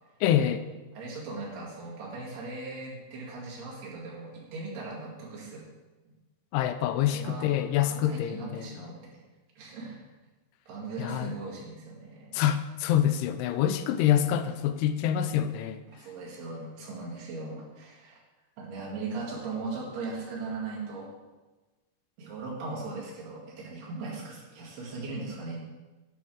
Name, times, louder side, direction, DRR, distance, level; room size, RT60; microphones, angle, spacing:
voice 1, 0.2-0.7 6.5-8.9 11.0-11.3 12.3-15.8, left 10 dB, 85° left, 11 dB, 2.6 m, -26 dB
voice 2, 0.9-5.7 7.1-9.1 9.6-10.0 10.7-12.3 15.9-18.2 18.6-21.1 22.2-25.6, right 3 dB, 75° right, -5 dB, 4.3 m, -38 dB
10.0 x 5.4 x 6.2 m, 1.2 s
omnidirectional pair, 4.6 m